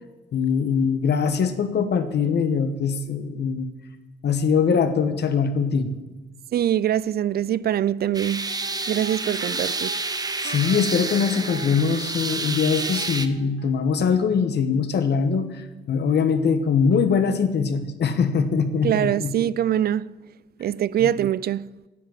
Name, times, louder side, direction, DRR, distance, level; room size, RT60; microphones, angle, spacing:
voice 1, 0.3-3.7 4.2-5.9 9.5-9.6 10.4-19.3 21.0-21.1, left 6 dB, 60° left, 1.3 m, -22 dB
voice 2, 6.5-8.5 8.9-10.0 18.8-20.1 20.6-21.7, right 11 dB, 50° right, 0.4 m, -23 dB
sound 1, 8.1-13.3, right 3 dB, 20° right, 0.9 m, -29 dB
sound 2, 8.4-13.7, right 3 dB, 80° right, 3.6 m, -41 dB
9.9 x 7.5 x 9.2 m
cardioid pair, 90°, 20 cm